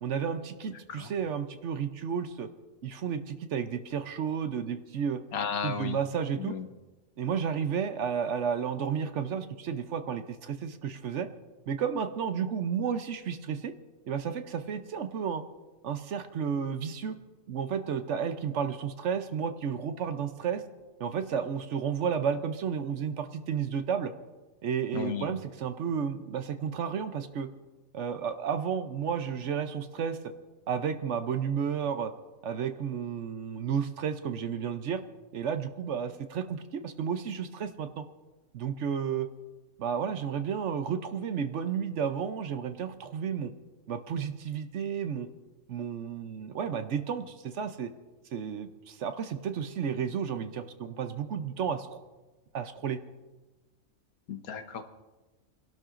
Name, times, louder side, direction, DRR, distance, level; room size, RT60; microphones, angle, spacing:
voice 1, 0.0-2.5 2.8-5.2 5.6-6.6 7.2-11.3 11.7-13.7 14.1-15.4 15.8-17.2 17.5-20.6 21.0-24.1 24.6-27.5 27.9-30.2 30.7-32.1 32.4-35.0 35.3-38.0 38.5-39.3 39.8-43.5 43.9-45.3 45.7-47.9 48.3-52.0 52.5-53.0, right 7 dB, 60° right, 9 dB, 1.0 m, -32 dB
voice 2, 5.3-6.0 6.4-6.7 24.9-25.3 54.3-54.8, left 6 dB, 85° left, 7 dB, 1.4 m, -34 dB
29.0 x 12.0 x 2.5 m, 1.2 s
omnidirectional pair, 1.5 m